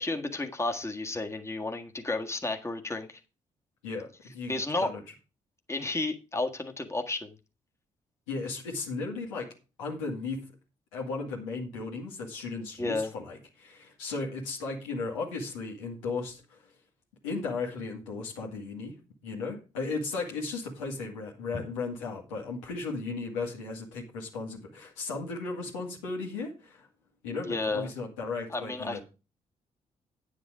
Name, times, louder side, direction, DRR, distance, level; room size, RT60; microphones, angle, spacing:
voice 1, 0.0-3.2 4.5-4.9 5.7-7.3 12.8-13.1 21.5-21.6 27.5-27.9 28.5-29.0, left 2 dB, 15° left, 3 dB, 1.6 m, -32 dB
voice 2, 3.8-5.0 8.3-9.5 9.8-10.4 10.9-16.7 17.2-18.9 19.2-26.9 27.2-29.0, left 3 dB, 85° left, -1 dB, 2.1 m, -35 dB
9.4 x 7.2 x 4.9 m, 0.31 s
hypercardioid pair, 40°, 16 cm